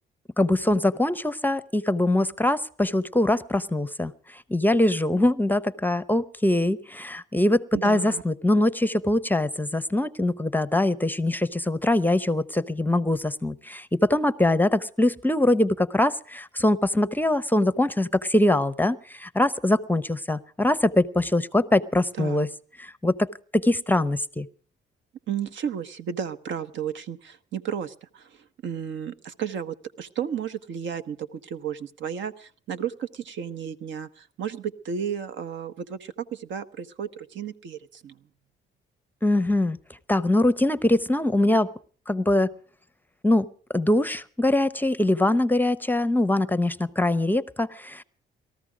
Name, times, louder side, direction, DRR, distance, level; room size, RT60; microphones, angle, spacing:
voice 1, 0.4-22.5 22.8-24.5 39.2-39.8 40.1-41.7 42.1-42.5 43.2-43.5 43.7-48.0, left 1 dB, 10° left, 15 dB, 0.7 m, -23 dB
voice 2, 7.7-8.2 22.2-22.4 25.3-38.2, right 8 dB, 70° right, 12 dB, 1.0 m, -33 dB
20.0 x 14.0 x 4.9 m, 0.43 s
cardioid pair, 90°, 20 cm